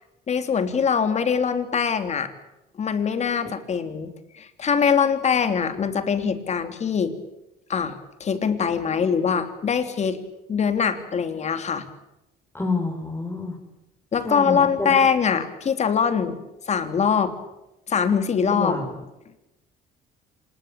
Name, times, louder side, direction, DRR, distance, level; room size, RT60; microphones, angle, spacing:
voice 1, 0.3-2.3 2.8-7.1 7.7-10.2 10.5-11.8 14.1-16.4 16.7-17.3 17.9-18.8, left 6 dB, 40° left, 9 dB, 3.2 m, -23 dB
voice 2, 12.5-13.6 14.2-14.9 18.5-18.9, left 3 dB, 10° left, 0 dB, 5.4 m, -28 dB
26.0 x 21.0 x 8.9 m, 0.93 s
cardioid pair, 110°, 17 cm